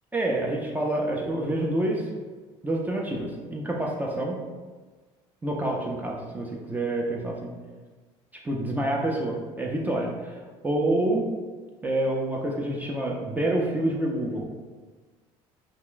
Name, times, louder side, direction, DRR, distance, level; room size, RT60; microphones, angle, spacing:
voice 1, 0.1-2.1 2.6-4.4 5.4-7.5 8.4-11.2 11.8-14.5, right 1 dB, 15° right, -1 dB, 0.4 m, -27 dB
2.4 x 2.1 x 3.7 m, 1.4 s
cardioid pair, 110°, 12 cm